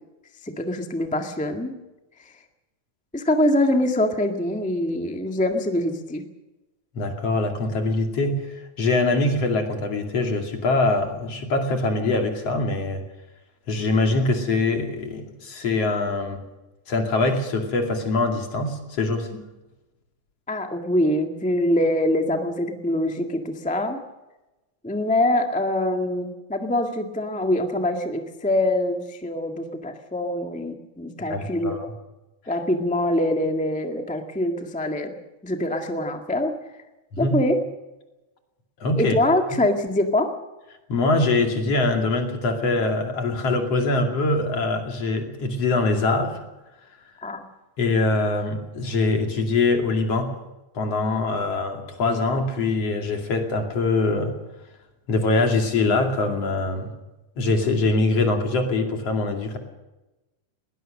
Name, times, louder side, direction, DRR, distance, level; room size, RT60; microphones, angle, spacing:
voice 1, 0.4-1.7 2.2-2.3 3.1-6.2 20.5-24.0 24.8-31.8 32.5-35.1 35.4-36.5 37.2-37.5 39.0-40.3 47.2-47.4, left 1 dB, 5° left, 4 dB, 1.0 m, -24 dB
voice 2, 7.0-13.0 13.7-16.4 16.9-19.4 31.3-31.9 37.1-37.4 38.8-39.2 40.9-46.5 47.8-50.3 50.8-54.4 55.1-56.9 57.4-59.6, left 3 dB, 50° left, 3 dB, 3.5 m, -23 dB
21.0 x 19.5 x 6.6 m, 1.0 s
omnidirectional pair, 3.6 m